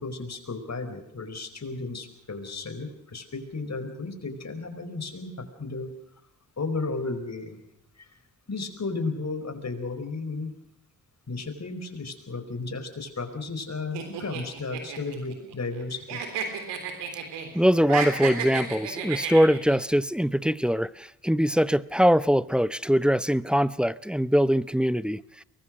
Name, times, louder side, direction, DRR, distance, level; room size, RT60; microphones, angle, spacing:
voice 1, 0.0-5.9 6.6-7.6 8.0-8.1 8.5-10.5 11.3-16.2, left 3 dB, 40° left, 8 dB, 4.8 m, -34 dB
sound 1, 13.9-15.8 16.1-17.5 17.8-19.8, right 6 dB, 90° right, 3.6 m, -32 dB
voice 2, 17.5-25.4, equal, ahead, 18 dB, 0.8 m, -22 dB
23.0 x 20.5 x 6.5 m, 0.80 s
supercardioid pair, 45°, 41 cm